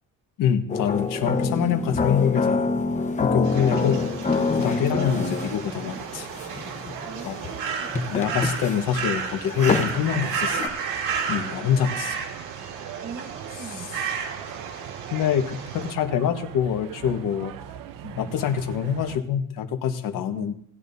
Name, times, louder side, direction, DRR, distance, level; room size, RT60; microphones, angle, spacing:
voice 1, 0.4-2.7 3.2-4.0 4.6-6.3 7.2-7.4 8.1-10.6 11.3-12.2 15.1-17.5 18.2-20.5, left 8 dB, 85° left, 6 dB, 1.4 m, -25 dB
sound 1, 0.7-10.7, left 4 dB, 20° left, 1.1 m, -26 dB
sound 2, 3.4-15.9, right 6 dB, 65° right, 2.2 m, -33 dB
voice 2, 3.6-4.3 5.0-5.3 7.1-8.2 10.1-10.6 13.0-14.0 18.0-18.4 20.3-20.5, right 6 dB, 35° right, 8 dB, 1.2 m, -41 dB
sound 3, 5.1-19.2, right 10 dB, 85° right, 0.9 m, -40 dB
19.0 x 10.5 x 2.7 m, 0.63 s
cardioid pair, 150°, 32 cm